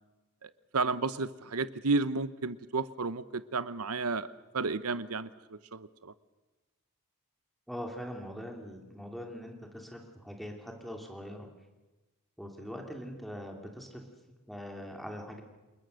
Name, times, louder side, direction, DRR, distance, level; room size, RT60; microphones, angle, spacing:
voice 1, 0.4-4.3 4.5-6.1, right 3 dB, 75° right, 14 dB, 0.9 m, -32 dB
voice 2, 7.7-11.5 12.4-14.0 14.5-15.4, equal, ahead, 2 dB, 2.7 m, -42 dB
27.5 x 21.0 x 6.5 m, 1.1 s
head